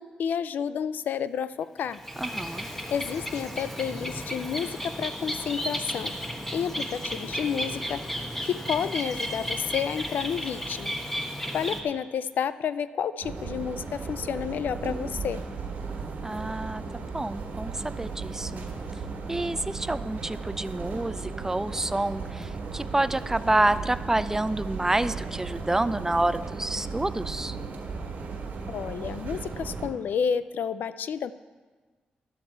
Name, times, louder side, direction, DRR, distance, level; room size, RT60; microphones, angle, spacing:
voice 1, 0.0-2.0 2.9-6.1 6.5-8.0 8.4-11.0 11.5-15.4 28.7-31.3, left 7 dB, 80° left, 15 dB, 0.4 m, -30 dB
Bird, 1.8-11.8, equal, 10° left, 1.4 m, -34 dB
voice 2, 2.2-2.7 16.2-18.7 19.3-27.6, right 2 dB, 15° right, 14 dB, 0.4 m, -28 dB
sound 1, 13.2-29.9, right 4 dB, 80° right, 1.5 m, -36 dB
11.5 x 8.4 x 4.5 m, 1.4 s
cardioid pair, 75°, 3 cm